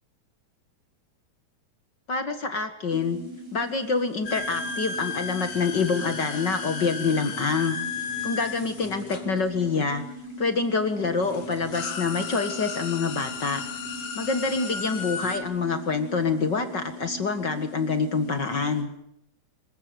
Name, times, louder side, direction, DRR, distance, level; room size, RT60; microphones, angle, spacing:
voice 1, 2.1-3.2 3.5-7.8 8.2-10.0 10.4-13.6 14.2-18.9, left 4 dB, 40° left, 8 dB, 1.7 m, -26 dB
sound 1, 2.9-18.8, equal, 30° right, 5.8 m, -40 dB
sound 2, 4.3-10.0 10.8-10.9 11.2-15.4, left 5 dB, 60° left, 4.0 m, -35 dB
27.0 x 15.0 x 9.3 m, 0.77 s
omnidirectional pair, 3.9 m